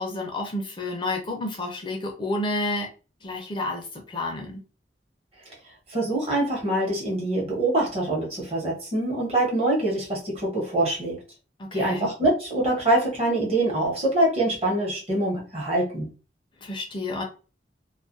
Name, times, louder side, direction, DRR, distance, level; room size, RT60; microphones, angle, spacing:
voice 1, 0.0-2.9 3.2-4.6 11.6-12.1 16.6-17.2, left 2 dB, 25° left, 1 dB, 0.4 m, -30 dB
voice 2, 5.9-11.2 11.7-16.1, right 1 dB, 35° right, -3 dB, 1.0 m, -24 dB
2.3 x 2.1 x 2.5 m, 0.34 s
head